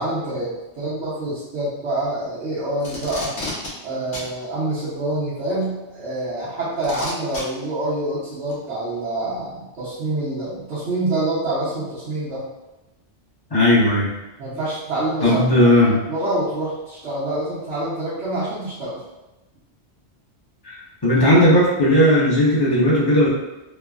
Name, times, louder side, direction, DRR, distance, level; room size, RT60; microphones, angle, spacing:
voice 1, 0.0-3.3 3.8-12.4 14.4-15.4 15.8-19.0, right 2 dB, 70° right, -12 dB, 1.1 m, -26 dB
Packing tape duct tape, 2.8-3.7 4.1-4.3 5.6-5.7 6.8-7.4 8.5-8.6, left 1 dB, 85° left, 1.1 m, -31 dB
voice 2, 13.5-14.1 15.2-16.1 20.6-20.8 21.0-23.3, left 1 dB, 25° left, -7 dB, 0.8 m, -16 dB
3.1 x 2.1 x 2.3 m, 1.0 s
omnidirectional pair, 1.2 m